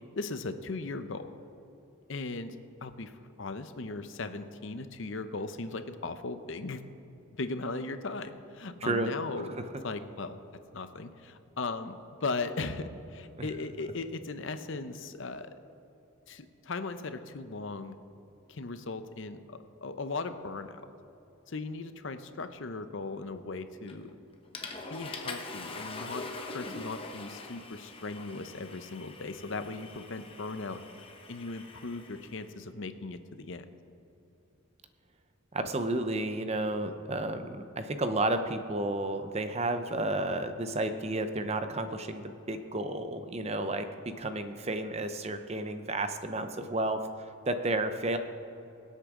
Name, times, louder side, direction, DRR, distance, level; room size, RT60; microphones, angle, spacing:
voice 1, 0.0-1.3 2.1-2.6 2.8-6.8 7.4-9.5 9.8-10.4 10.7-15.5 16.3-17.9 18.5-20.8 21.5-24.1 24.9-26.3 26.5-30.8 31.3-33.6, left 3 dB, 60° left, 10 dB, 0.7 m, -38 dB
Water / Toilet flush, 23.9-24.1 24.5-32.4, left 3 dB, 25° left, 1.0 m, -43 dB
voice 2, 35.5-47.0 47.5-48.2, right 2 dB, 30° right, 8 dB, 0.7 m, -32 dB
24.5 x 8.3 x 3.7 m, 3.0 s
head